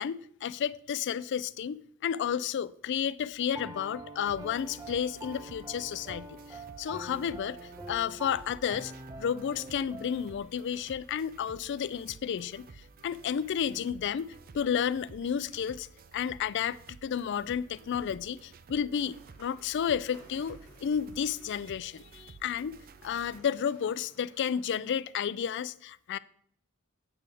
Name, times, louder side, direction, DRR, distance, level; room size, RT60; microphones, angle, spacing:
voice 1, 0.0-8.9 9.2-12.7 13.0-15.9 16.1-22.8 23.0-26.2, left 8 dB, 55° left, 0.3 m, -32 dB
Piano, 3.5-10.4, right 1 dB, 15° right, 0.8 m, -45 dB
sound 1, 4.3-23.4, right 4 dB, 45° right, 0.5 m, -53 dB
sound 2, 19.0-25.2, right 1 dB, 85° right, 2.7 m, -60 dB
8.6 x 8.3 x 3.4 m
head